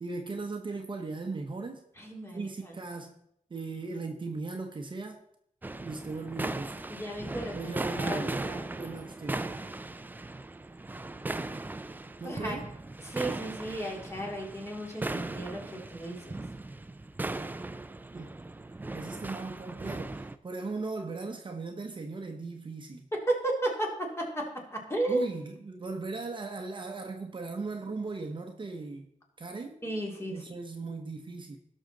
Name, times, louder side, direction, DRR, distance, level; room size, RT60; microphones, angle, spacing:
voice 1, 0.0-1.8 2.3-3.2 3.5-5.2 5.8-6.9 7.5-9.4 12.2-12.6 18.1-18.4 18.9-23.1 25.1-29.1 29.4-29.8 30.3-31.6, right 3 dB, 35° right, 0.9 m, -38 dB
voice 2, 2.0-2.7 6.9-8.7 12.2-12.6 13.0-16.4 23.1-25.3 29.8-30.6, right 1 dB, 20° left, 2.5 m, -34 dB
sound 1, 5.6-20.4, right 2 dB, 15° right, 0.4 m, -38 dB
17.5 x 6.3 x 3.9 m
wide cardioid pair, 150°, 14 cm